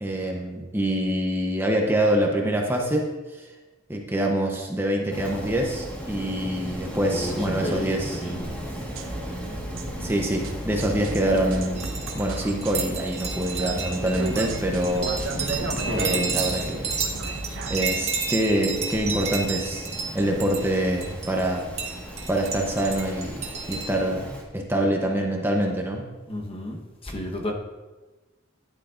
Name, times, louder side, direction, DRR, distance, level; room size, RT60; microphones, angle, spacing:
voice 1, 0.0-3.5 3.9-8.2 10.0-15.6 15.9-16.9 17.7-19.9 20.1-21.7 22.3-26.1, right 1 dB, 10° right, 0 dB, 0.8 m, -25 dB
Rain, 5.1-24.4, equal, 10° left, 1.5 m, -36 dB
voice 2, 7.1-8.5 15.8-16.3 26.3-27.5, left 1 dB, 30° left, 1 dB, 1.1 m, -33 dB
sound 1, 8.8-17.8, right 2 dB, 80° right, 1.0 m, -35 dB
sound 2, 11.8-24.0, right 6 dB, 35° right, 1.4 m, -31 dB
12.0 x 10.0 x 2.5 m, 1.2 s
head